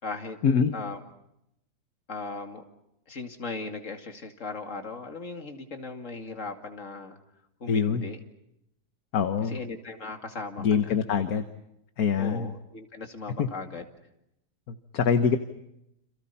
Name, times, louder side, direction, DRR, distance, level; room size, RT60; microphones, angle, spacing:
voice 1, 0.0-0.4 0.7-1.0 2.1-2.6 3.1-7.2 7.6-8.2 9.5-11.0 12.2-13.8, left 3 dB, 50° left, 5 dB, 2.8 m, -38 dB
voice 2, 7.7-8.1 9.1-9.6 10.6-11.4 12.0-12.5 13.4-13.5 14.7-15.4, left 6 dB, 65° left, 9 dB, 1.6 m, -24 dB
30.0 x 28.0 x 5.7 m, 0.82 s
omnidirectional pair, 1.7 m